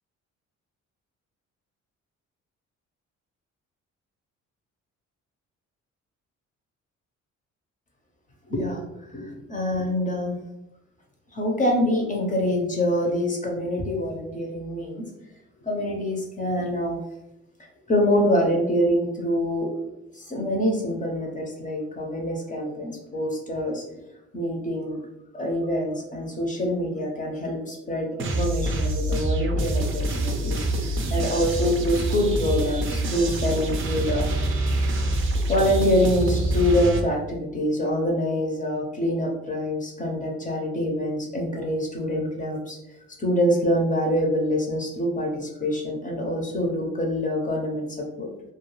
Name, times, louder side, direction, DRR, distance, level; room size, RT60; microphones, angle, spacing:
voice 1, 8.5-8.8 9.1-10.3 11.3-15.0 15.6-17.0 17.6-19.7 20.1-23.8 24.3-25.0 25.3-34.3 35.5-42.8 43.2-48.3, equal, 25° left, 0 dB, 0.6 m, -25 dB
sound 1, 28.2-37.0, right 1 dB, 45° right, 0.5 m, -26 dB
2.3 x 2.2 x 3.0 m, 0.89 s
cardioid pair, 90°, 30 cm